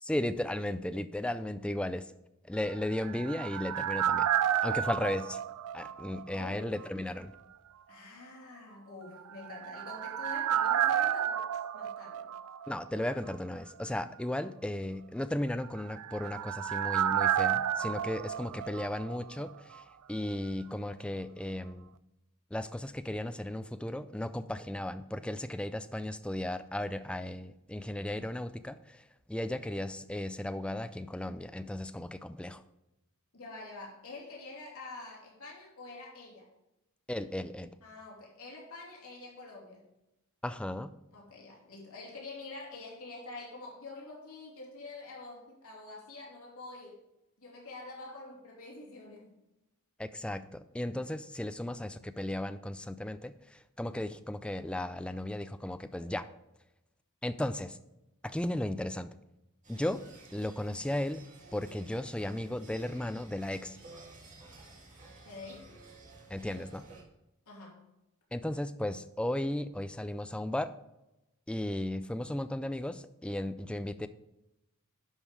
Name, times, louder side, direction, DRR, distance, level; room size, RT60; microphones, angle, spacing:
voice 1, 0.0-2.1 2.5-4.3 4.6-5.4 5.7-7.3 12.7-19.8 20.1-21.9 22.5-32.6 37.1-37.7 40.4-40.9 50.0-56.3 57.2-57.8 58.2-59.2 59.7-60.0 60.3-61.3 61.5-63.8 66.3-66.8 68.3-70.7 71.5-74.1, left 1 dB, 5° left, 11 dB, 0.3 m, -35 dB
sound 1, 2.7-6.5 6.8-6.9 9.3-13.0 13.3-13.4 15.6-19.5 19.7-19.8, right 10 dB, 85° right, 0.4 m, -31 dB
voice 2, 6.3-6.7 7.9-11.4 11.7-12.3 33.3-36.5 37.8-39.8 41.1-47.0 47.4-49.3 65.2-65.6 67.5-67.8, left 3 dB, 75° left, -3 dB, 3.0 m, -46 dB
sound 2, 59.6-67.0, right 3 dB, 35° right, 1.8 m, -53 dB
11.0 x 5.2 x 4.8 m, 0.93 s
head